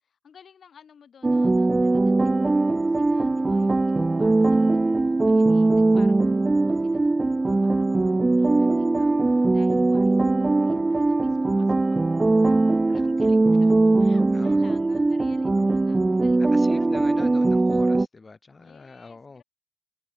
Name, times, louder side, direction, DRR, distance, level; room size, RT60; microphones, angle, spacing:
voice 1, 0.0-16.9 18.5-19.4, left 7 dB, 50° left, 5.7 m, -54 dB
sound 1, 1.2-18.0, right 2 dB, 20° right, 0.5 m, -20 dB
voice 2, 14.3-14.7 16.4-19.4, left 3 dB, 25° left, 4.0 m, -42 dB
open air
cardioid pair, 90°, 0 cm